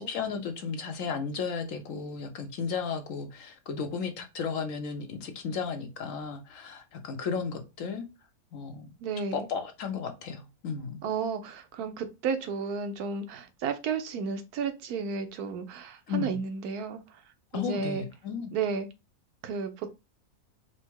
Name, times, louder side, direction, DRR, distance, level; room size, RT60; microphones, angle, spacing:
voice 1, 0.0-8.1 8.5-8.9 9.3-11.0 16.1-16.4 17.5-18.5, left 6 dB, 65° left, 1.0 m, -34 dB
voice 2, 9.0-9.5 11.0-17.0 17.5-18.0 18.5-18.9 19.4-19.9, right 5 dB, 85° right, 1.2 m, -32 dB
4.3 x 2.1 x 4.5 m
omnidirectional pair, 1.6 m